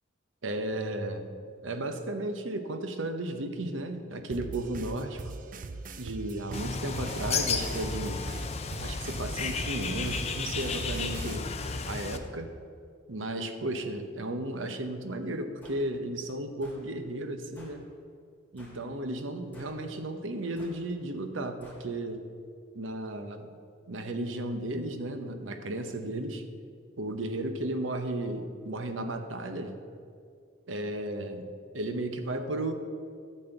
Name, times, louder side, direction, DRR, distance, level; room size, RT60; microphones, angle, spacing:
voice 1, 0.4-1.3 1.6-5.2 6.0-8.3 8.8-11.5 11.9-12.5 13.1-17.8 18.5-22.2 22.7-23.5 23.9-26.4 27.0-29.7 30.7-32.7, right 1 dB, 85° right, 7 dB, 0.9 m, -34 dB
sound 1, 4.3-11.4, right 3 dB, 45° right, 0.5 m, -40 dB
Bird, 6.5-12.2, left 5 dB, 35° left, 0.6 m, -33 dB
sound 2, 15.6-15.8 16.6-16.8 17.5-17.8 18.6-18.8 19.5-19.8 20.6-20.8 21.6-21.8, left 1 dB, 10° left, 3.1 m, -53 dB
12.5 x 4.4 x 7.8 m, 2.3 s
head